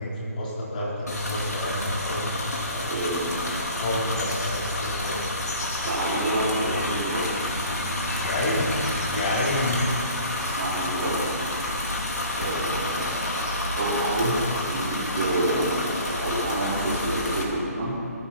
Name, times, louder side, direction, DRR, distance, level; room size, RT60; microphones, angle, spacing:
voice 1, 0.0-2.3 2.7-3.1 3.5-5.2 8.2-8.7 9.1-9.9 12.4-12.5, left 1 dB, 30° left, -5 dB, 3.9 m, -29 dB
sound 1, 1.1-17.4, left 1 dB, 85° left, 3.3 m, -29 dB
voice 2, 2.9-3.4 5.8-7.3 10.3-11.3 12.4-13.1 13.8-14.3 14.7-17.9, right 1 dB, 40° right, -11 dB, 4.7 m, -28 dB
21.0 x 14.0 x 4.3 m, 2.7 s
figure-of-eight pair, 165°, 9 cm